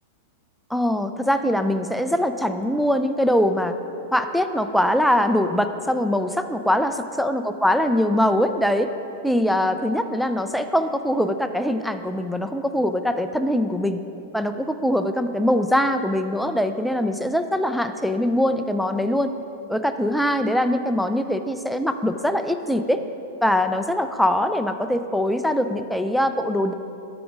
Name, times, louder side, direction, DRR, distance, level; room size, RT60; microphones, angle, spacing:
voice 1, 0.7-3.7 4.1-8.9 9.2-14.0 14.3-19.3 19.7-23.0 23.4-26.7, left 1 dB, ahead, 8 dB, 0.4 m, -22 dB
12.5 x 4.9 x 5.2 m, 2.9 s
hypercardioid pair, 105°, 0 cm